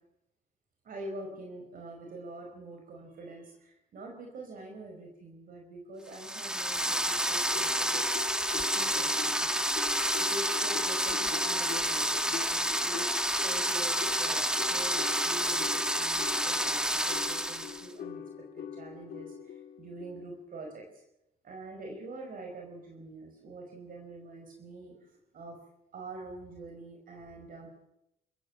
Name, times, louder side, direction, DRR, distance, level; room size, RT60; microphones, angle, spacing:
voice 1, 0.8-9.6 10.2-21.0 21.4-25.6 25.9-27.7, right 2 dB, 60° right, 2 dB, 5.4 m, -45 dB
sound 1, 6.1-17.9, equal, 5° right, 1.9 m, -29 dB
sound 2, 7.5-20.4, left 8 dB, 65° left, 2.4 m, -44 dB
28.0 x 15.0 x 7.4 m, 0.82 s
cardioid pair, 90°, 17 cm